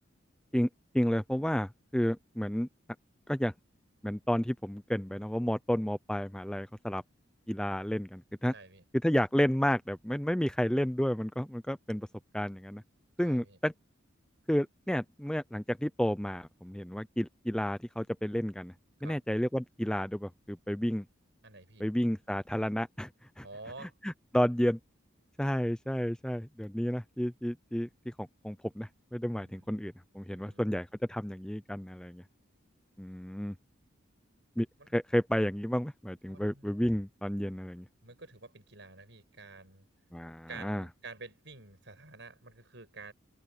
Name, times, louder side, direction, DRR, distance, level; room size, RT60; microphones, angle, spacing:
voice 1, 0.9-2.7 3.3-3.5 4.0-7.0 7.5-8.5 9.0-12.1 12.3-12.8 13.2-13.7 14.5-18.7 19.0-21.0 21.8-23.1 23.4-23.5 24.0-24.8 25.4-32.2 33.0-33.6 34.6-34.7 34.9-37.9 40.1-40.8, equal, 5° left, 0.5 m, -31 dB
voice 2, 8.5-8.8 13.2-13.6 19.0-19.2 21.4-21.8 23.4-23.9 29.4-29.7 30.3-30.6 34.8-34.9 36.3-36.7 38.0-39.8 40.5-43.1, right 3 dB, 65° right, 6.3 m, -49 dB
head